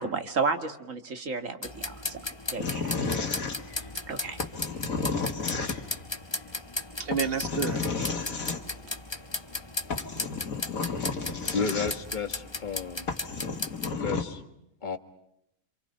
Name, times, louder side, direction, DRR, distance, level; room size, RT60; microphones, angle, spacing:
voice 1, 0.0-2.2 2.5-3.1 4.1-4.4, right 4 dB, 65° right, 7 dB, 2.2 m, -32 dB
sound 1, 1.6-13.9, left 2 dB, 20° left, 1.3 m, -36 dB
sound 2, 2.6-3.9 4.4-6.1 7.1-8.6 9.6-9.7 9.9-12.2 12.7-12.8 13.1-14.2, left 4 dB, 80° left, 2.6 m, -32 dB
voice 2, 7.0-9.0 9.8-11.4, right 5 dB, 45° right, 10 dB, 1.5 m, -35 dB
voice 3, 11.5-13.1 14.0-14.4 14.8-15.0, left 5 dB, 35° left, 8 dB, 1.7 m, -32 dB
28.0 x 27.5 x 5.6 m, 0.81 s
omnidirectional pair, 1.4 m